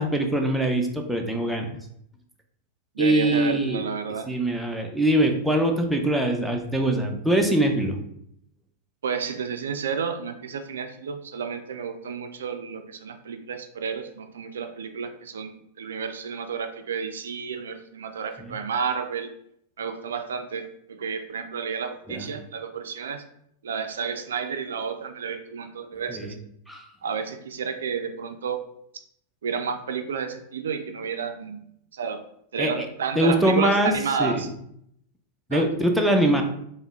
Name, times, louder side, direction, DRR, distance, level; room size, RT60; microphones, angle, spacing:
voice 1, 0.0-1.8 3.0-3.9 4.3-8.0 18.4-18.5 22.1-22.3 26.1-26.3 26.7-26.9 32.6-32.9 33.2-33.9 34.2-34.4 35.5-36.4, right 1 dB, ahead, 2 dB, 0.5 m, -23 dB
voice 2, 3.0-4.3 9.0-19.3 19.8-23.2 23.6-26.4 27.0-28.6 29.4-31.6 31.9-32.2 32.5-34.5 35.5-35.7, right 6 dB, 80° right, 8 dB, 0.3 m, -31 dB
3.5 x 2.1 x 3.5 m, 0.72 s
hypercardioid pair, 100°, 0 cm